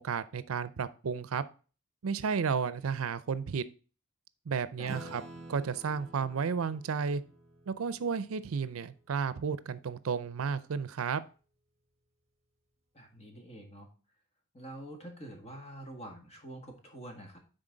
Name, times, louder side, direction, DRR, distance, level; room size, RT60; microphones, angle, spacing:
voice 1, 0.0-1.4 2.0-3.6 4.5-5.2 5.5-7.2 7.7-11.2, right 6 dB, 85° right, 15 dB, 0.5 m, -32 dB
voice 2, 4.8-5.1 12.9-13.9 14.5-17.4, right 1 dB, 30° left, 2 dB, 1.7 m, -46 dB
Acoustic guitar / Strum, 4.8-9.7, right 1 dB, 30° right, 1.4 m, -50 dB
10.0 x 3.9 x 3.8 m, 0.37 s
head